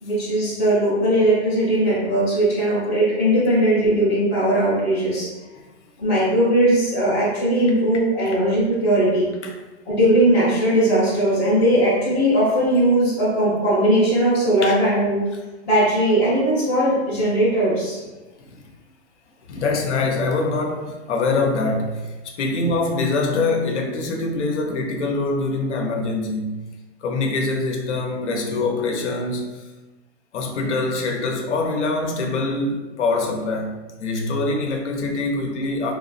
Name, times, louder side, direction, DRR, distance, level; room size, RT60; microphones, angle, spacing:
voice 1, 0.0-5.3 6.0-9.3 9.9-15.2 15.7-18.0, right 1 dB, 5° left, -13 dB, 0.4 m, -19 dB
voice 2, 19.5-26.6 27.0-29.6 30.3-35.9, left 3 dB, 85° left, 2 dB, 0.7 m, -24 dB
2.9 x 2.2 x 2.4 m, 1.2 s
hypercardioid pair, 160°, 34 cm